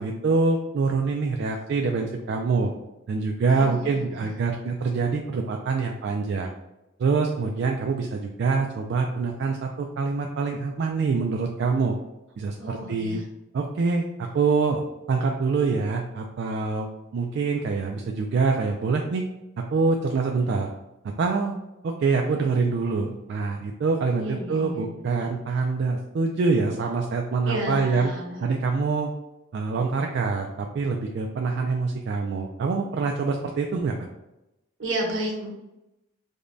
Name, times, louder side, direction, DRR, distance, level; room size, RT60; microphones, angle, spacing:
voice 1, 0.0-2.7 3.1-6.5 7.0-12.0 12.4-13.2 13.5-14.8 15.1-16.9 17.1-19.2 19.6-20.7 21.2-21.5 21.8-28.1 28.4-29.1 29.5-33.9, right 4 dB, 60° right, 2 dB, 0.3 m, -25 dB
voice 2, 3.5-4.3 12.6-13.2 24.1-25.3 27.4-28.4 34.8-35.5, right 1 dB, 75° right, 1 dB, 0.9 m, -32 dB
5.0 x 2.2 x 2.5 m, 0.94 s
head